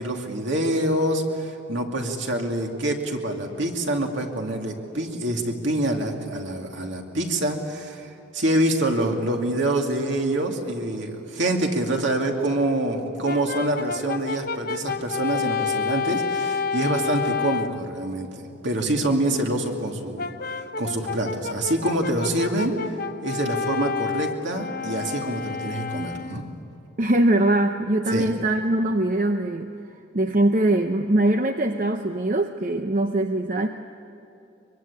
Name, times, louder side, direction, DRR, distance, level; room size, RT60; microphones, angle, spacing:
voice 1, 0.0-22.7 23.2-26.4 28.1-28.3, right 1 dB, 60° right, 2 dB, 2.5 m, -26 dB
Brass instrument, 13.2-17.8 20.2-26.5, left 5 dB, 45° left, 0.7 m, -29 dB
voice 2, 27.0-29.7 30.1-33.7, right 1 dB, 40° right, 6 dB, 0.7 m, -22 dB
23.5 x 23.5 x 8.7 m, 2.7 s
head